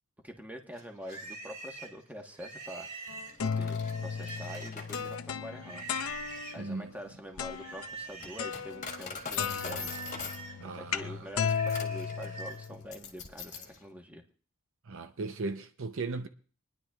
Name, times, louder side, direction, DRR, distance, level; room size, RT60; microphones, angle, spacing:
voice 1, 0.2-2.9 3.4-5.9 6.5-10.0 10.6-14.2, equal, 10° right, 1.3 m, -45 dB
Livestock farm animals working animals, 0.7-5.0 5.5-6.7 7.4-8.6 9.0-12.6, right 3 dB, 35° right, 2.2 m, -46 dB
sound 1, 3.1-6.7 7.4-7.9 8.4-9.1 9.4-12.9, left 6 dB, 80° left, 0.7 m, -35 dB
Coin (dropping), 3.3-13.8, left 5 dB, 35° left, 1.6 m, -44 dB
voice 2, 6.6-6.9 10.6-11.3 14.9-16.3, right 3 dB, 65° right, 0.7 m, -37 dB
27.0 x 10.5 x 2.4 m
head